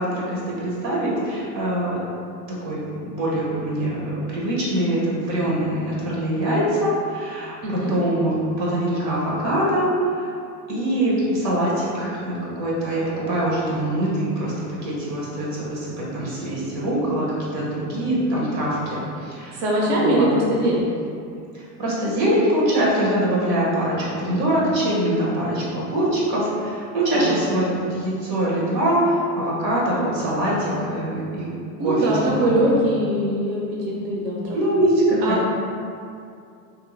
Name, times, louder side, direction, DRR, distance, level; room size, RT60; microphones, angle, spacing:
voice 1, 0.0-2.0 2.5-9.9 10.1-10.3 10.7-19.6 19.9-20.3 21.5-31.5 31.8-32.8 34.5-35.2, right 1 dB, 85° right, -6 dB, 1.0 m, -23 dB
voice 2, 7.6-7.9 19.6-20.9 27.1-27.4 31.8-34.6 35.2-35.5, right 1 dB, 55° right, -3 dB, 0.6 m, -22 dB
2.6 x 2.0 x 3.0 m, 2.4 s
hypercardioid pair, 95°, 49 cm